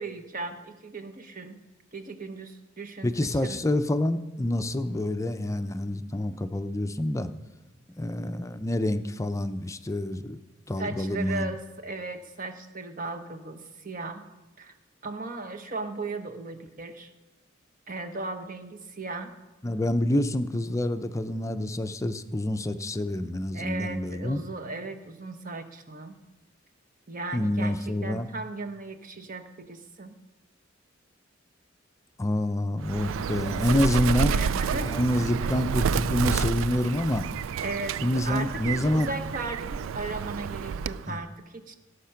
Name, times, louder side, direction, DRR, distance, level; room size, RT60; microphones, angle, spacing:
voice 1, 0.0-1.6 1.9-3.6 10.8-14.2 14.6-14.7 15.0-17.1 17.9-19.3 23.5-26.2 27.1-30.2 34.3-35.0 35.4-35.5 37.6-38.0 38.2-41.7, right 3 dB, 45° right, 8 dB, 1.1 m, -36 dB
voice 2, 3.0-7.3 8.0-10.4 10.7-11.5 19.6-24.4 27.3-28.3 32.2-34.3 34.9-37.3 38.0-39.1 41.1-41.2, left 1 dB, 15° left, 10 dB, 0.5 m, -27 dB
Bird, 32.8-41.1, right 6 dB, 90° right, 0.3 m, -29 dB
17.0 x 6.5 x 5.8 m, 1.2 s
head